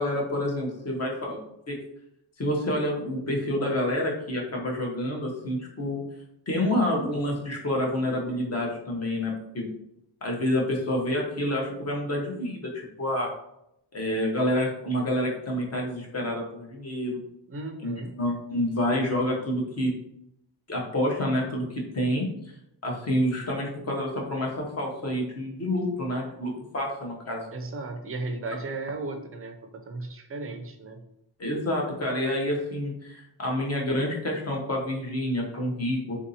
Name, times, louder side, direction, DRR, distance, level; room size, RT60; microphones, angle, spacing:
voice 1, 0.0-1.8 2.4-6.0 6.5-9.7 10.2-13.3 13.9-17.2 17.8-19.9 20.7-22.3 22.8-27.5 31.4-36.2, left 1 dB, 35° left, -1 dB, 0.8 m, -28 dB
voice 2, 17.5-18.1 27.5-31.0, right 3 dB, 35° right, 4 dB, 0.4 m, -35 dB
3.7 x 2.7 x 2.7 m, 0.80 s
wide cardioid pair, 140°, 43 cm